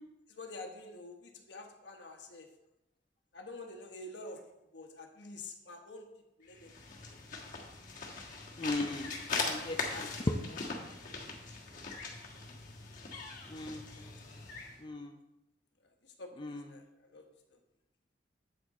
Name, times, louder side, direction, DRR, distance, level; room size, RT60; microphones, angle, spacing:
voice 1, 0.3-2.5 3.3-6.7 7.0-7.2 9.9-11.8 13.9-14.4 15.8-17.6, left 2 dB, 70° left, 3 dB, 1.2 m, -49 dB
sound 1, 6.5-14.8, left 4 dB, 45° left, 1.4 m, -41 dB
voice 2, 8.6-9.1 9.4-9.9 13.5-13.9 14.8-15.1 16.4-16.6, left 2 dB, 25° left, 3 dB, 0.5 m, -38 dB
8.0 x 6.2 x 4.2 m, 0.90 s
head